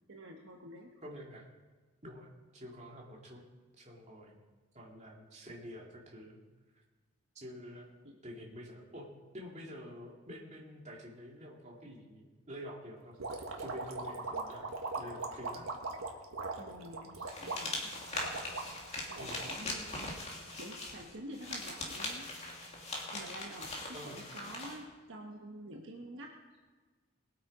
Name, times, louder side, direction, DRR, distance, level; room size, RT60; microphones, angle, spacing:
voice 1, 0.1-0.9 8.0-8.2 16.5-17.8 19.1-20.2 20.5-22.3 23.1-26.3, right 1 dB, 60° right, 0 dB, 1.3 m, -48 dB
voice 2, 1.0-1.4 2.0-3.4 3.8-4.4 4.7-6.4 7.3-7.9 8.2-9.1 9.3-13.1 13.6-15.7 19.2-19.4 23.9-24.2, equal, 30° right, -2 dB, 2.4 m, -48 dB
sound 1, 13.2-20.5, right 3 dB, 80° right, 1.6 m, -40 dB
sound 2, 17.3-24.8, left 2 dB, 30° left, 2.3 m, -41 dB
21.0 x 8.6 x 4.9 m, 1.4 s
head